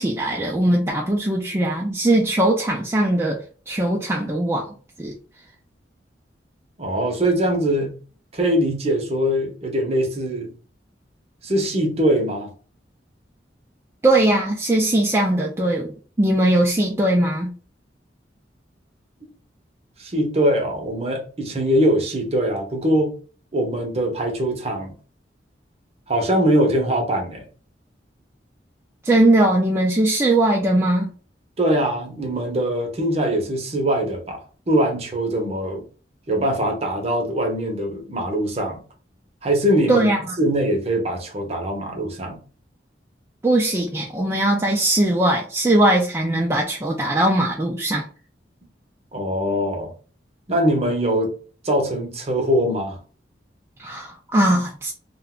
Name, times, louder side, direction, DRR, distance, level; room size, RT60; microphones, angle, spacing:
voice 1, 0.0-3.4 3.7-4.7 5.0-5.1 14.0-17.5 29.0-31.1 39.9-40.4 43.4-48.0 53.8-54.9, right 1 dB, 15° right, 0.4 m, -20 dB
voice 2, 6.8-8.0 8.3-10.5 11.4-12.5 20.0-23.1 23.5-24.9 26.1-27.5 31.6-34.4 34.7-35.8 36.3-38.8 39.4-40.1 40.4-42.4 49.1-49.9 50.5-51.3 51.6-53.0, equal, 35° right, 0.7 m, -22 dB
2.5 x 2.2 x 3.6 m
head